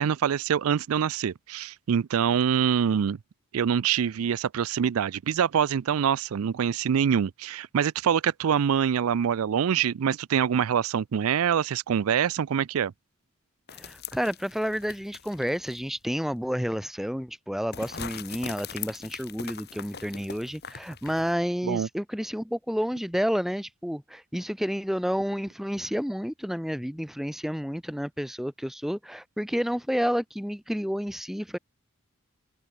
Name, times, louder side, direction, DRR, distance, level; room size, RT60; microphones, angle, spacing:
voice 1, 0.0-3.2 3.5-12.9 21.6-21.9, right 8 dB, 85° right, 0.4 m, -25 dB
sound 1, 13.7-15.9 16.3-16.4 17.7-21.4, left 7 dB, 50° left, 2.0 m, -41 dB
voice 2, 13.7-31.6, equal, ahead, 1.3 m, -30 dB
open air
head